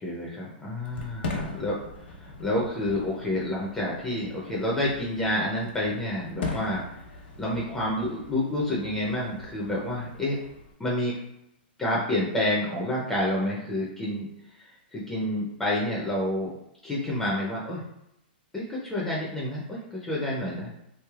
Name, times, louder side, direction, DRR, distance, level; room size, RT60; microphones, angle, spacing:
voice 1, 0.0-6.8 7.4-10.4 10.8-11.2 11.8-14.3 14.9-16.5 16.8-17.8 18.5-20.7, left 1 dB, 5° left, -5 dB, 0.4 m, -29 dB
Fireworks, 0.8-10.7, left 3 dB, 75° left, 1.0 m, -40 dB
3.1 x 3.1 x 2.3 m, 0.83 s
hypercardioid pair, 175°, 6 cm